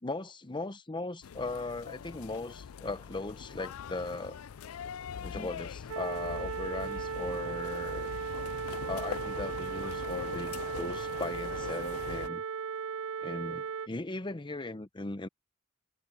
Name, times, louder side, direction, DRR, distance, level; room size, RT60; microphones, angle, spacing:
voice 1, 0.0-4.4 5.2-8.1 8.9-12.4 13.2-15.3, left 2 dB, 20° left, 0.8 m, -38 dB
sound 1, 1.2-12.3, left 7 dB, 75° left, 0.4 m, -42 dB
sound 2, 5.9-13.9, right 6 dB, 80° right, 0.4 m, -37 dB
head